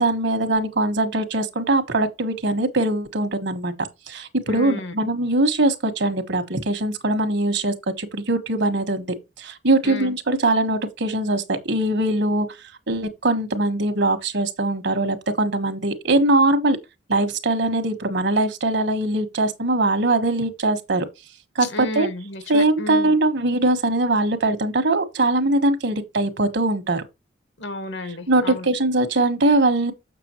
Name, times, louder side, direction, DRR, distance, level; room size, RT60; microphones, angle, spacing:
voice 1, 0.0-3.7 4.1-12.5 12.9-16.8 17.1-21.0 21.5-21.7 21.9-22.1 22.5-27.0 28.3-29.9, right 2 dB, 65° right, 1.4 m, -21 dB
voice 2, 4.5-4.9 9.8-10.1 21.6-23.1 27.6-28.7, left 2 dB, 70° left, 1.3 m, -32 dB
7.0 x 6.8 x 3.0 m
head